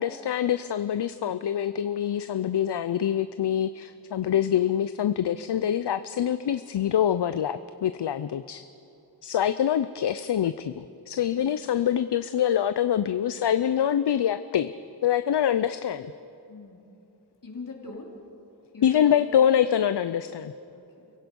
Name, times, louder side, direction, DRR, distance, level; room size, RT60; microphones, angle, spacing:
voice 1, 0.0-8.6 9.2-14.7 15.0-16.1 18.8-20.5, left 9 dB, 70° left, 12 dB, 0.6 m, -25 dB
voice 2, 17.4-18.2 18.7-19.3 20.7-21.1, left 3 dB, 50° left, -1 dB, 3.3 m, -42 dB
29.5 x 17.0 x 5.3 m, 2.7 s
wide cardioid pair, 100°, 43 cm